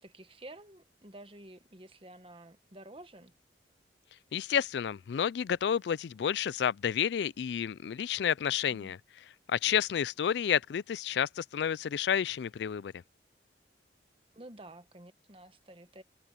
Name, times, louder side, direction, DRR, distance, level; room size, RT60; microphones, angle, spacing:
voice 1, 0.0-3.3 8.6-8.9 14.3-16.0, right 1 dB, 30° right, 1.3 m, -51 dB
voice 2, 4.3-9.0 9.5-12.9, left 8 dB, 70° left, 0.3 m, -30 dB
head